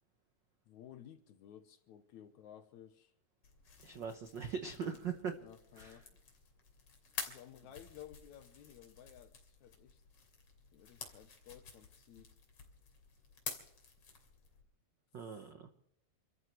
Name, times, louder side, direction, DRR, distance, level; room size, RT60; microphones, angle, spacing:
voice 1, 0.7-3.1 5.4-6.1 7.3-10.0 10.7-12.4 15.2-15.5, left 10 dB, 70° left, 9 dB, 2.1 m, -56 dB
sound 1, 3.4-14.6, left 5 dB, 45° left, 3.7 m, -50 dB
voice 2, 3.8-5.4 5.8-6.0 15.1-15.7, right 6 dB, 85° right, 7 dB, 0.9 m, -41 dB
29.5 x 14.0 x 3.2 m, 0.79 s
omnidirectional pair, 3.7 m